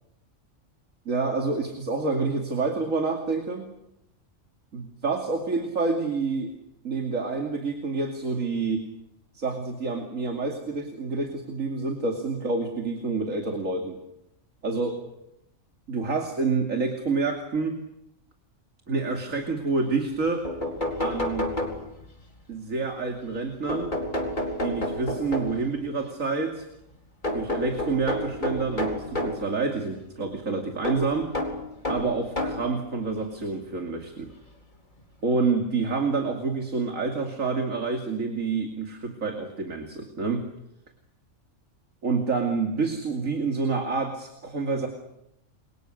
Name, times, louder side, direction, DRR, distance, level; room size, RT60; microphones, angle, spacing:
voice 1, 1.1-3.7 4.7-6.5 6.8-8.9 9.3-14.0 14.6-15.0 15.9-17.8 18.9-20.5 21.0-21.5 22.5-23.9 24.6-26.6 27.3-31.4 31.9-34.3 35.2-40.5 42.0-44.9, right 4 dB, 80° right, 3 dB, 3.0 m, -28 dB
sound 1, 20.1-20.2 20.4-22.2 23.7-25.8 27.2-29.5 30.8-32.7 33.6-33.7 35.0-35.1 35.4-35.5, left 1 dB, 35° left, 4.6 m, -30 dB
30.0 x 25.0 x 6.6 m, 0.83 s
omnidirectional pair, 1.4 m